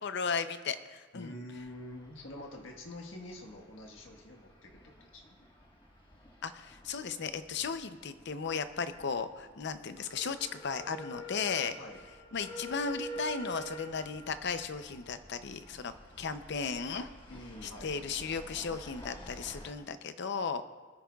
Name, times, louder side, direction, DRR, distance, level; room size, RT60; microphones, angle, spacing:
voice 1, 0.0-1.3 6.4-11.8 12.3-17.1 17.6-20.6, left 5 dB, 60° left, 11 dB, 0.6 m, -35 dB
voice 2, 1.1-5.3 11.8-12.0 13.9-14.0 17.3-18.0, left 1 dB, 85° left, 2 dB, 1.5 m, -46 dB
sound 1, 1.5-19.7, right 1 dB, 25° left, 1.6 m, -49 dB
22.5 x 10.0 x 2.4 m, 1.4 s
head